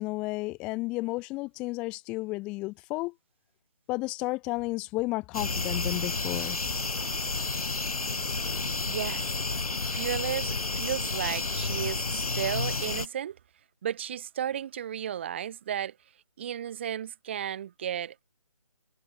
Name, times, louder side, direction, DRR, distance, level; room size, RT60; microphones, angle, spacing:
voice 1, 0.0-3.1 3.9-6.6, left 22 dB, 5° left, 0.8 m, -32 dB
sound 1, 5.3-13.1, left 3 dB, 80° left, 1.4 m, -31 dB
voice 2, 8.8-9.4 9.9-13.4 13.8-16.0 16.4-18.1, right 10 dB, 20° right, 1.5 m, -34 dB
figure-of-eight pair, 165°, 18 cm